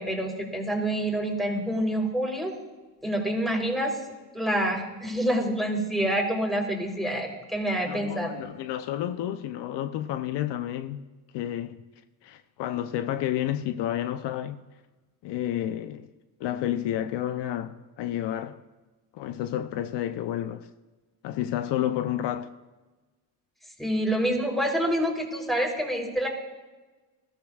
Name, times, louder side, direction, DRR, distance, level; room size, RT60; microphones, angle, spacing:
voice 1, 0.0-2.5 3.0-3.9 4.3-8.3 23.8-26.3, right 1 dB, ahead, 3.6 m, -27 dB
voice 2, 7.9-11.1 11.3-11.8 12.2-14.6 15.2-16.1 16.4-18.6 19.1-20.7 21.2-22.5, left 11 dB, 65° left, 0.7 m, -30 dB
20.0 x 13.5 x 2.4 m
supercardioid pair, 70°, 44 cm